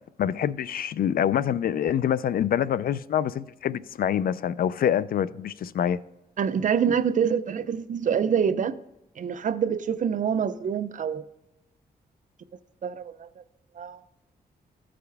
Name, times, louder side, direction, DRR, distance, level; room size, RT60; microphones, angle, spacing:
voice 1, 0.2-6.0, left 9 dB, 65° left, 0.4 m, -25 dB
voice 2, 6.4-8.8 9.2-11.3 12.8-13.4 13.8-14.0, right 7 dB, 55° right, 0.6 m, -26 dB
14.5 x 5.0 x 3.4 m
cardioid pair, 90°, 16 cm